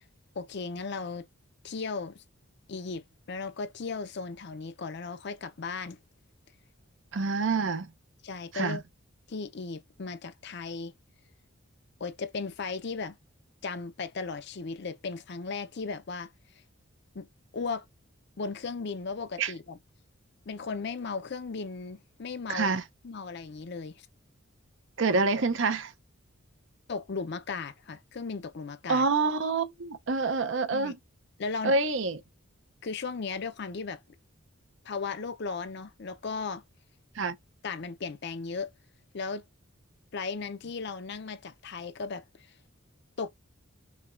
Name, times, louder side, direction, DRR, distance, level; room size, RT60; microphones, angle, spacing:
voice 1, 0.4-1.3 1.6-2.2 2.7-6.0 8.2-8.8 9.3-10.9 12.0-13.2 13.6-16.3 17.1-17.3 17.5-17.8 18.4-19.8 20.5-22.8 23.0-24.0 26.9-29.1 30.7-30.9 31.4-31.8 32.8-34.0 34.8-36.6 37.6-38.7 39.1-39.4 40.1-42.2 43.2-43.3, left 4 dB, 50° left, 0.5 m, -36 dB
voice 2, 7.1-7.9 8.5-8.8 19.4-19.5 22.5-22.8 25.0-25.9 28.9-31.0 31.6-32.2 37.2-37.4, right 3 dB, 60° right, 0.6 m, -27 dB
5.7 x 2.3 x 2.5 m
head